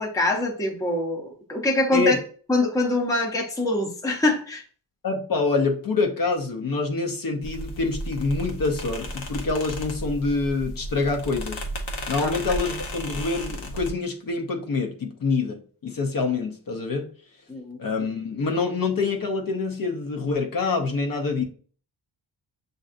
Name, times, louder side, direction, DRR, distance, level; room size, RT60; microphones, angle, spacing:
voice 1, 0.0-2.2 2.5-4.6 12.2-12.3 17.5-17.8, left 2 dB, 5° left, 0.7 m, -24 dB
voice 2, 5.0-11.6 12.1-17.1 17.8-21.4, left 4 dB, 45° left, 0.7 m, -26 dB
sound 1, 7.4-13.9, equal, 85° left, 1.0 m, -34 dB
7.3 x 2.6 x 2.5 m
wide cardioid pair, 155°, 46 cm